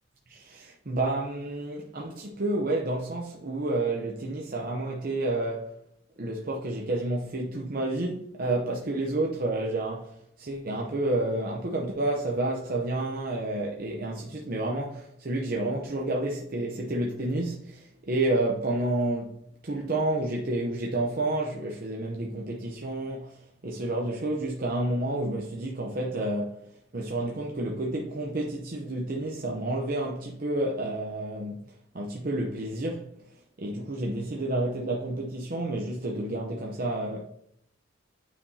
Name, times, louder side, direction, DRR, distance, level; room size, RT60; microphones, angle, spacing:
voice 1, 0.3-5.8 6.2-19.4 19.6-26.5 26.9-31.6 31.9-33.1 33.6-37.2, right 2 dB, 45° right, 0.7 m, -30 dB
8.6 x 5.0 x 2.8 m
head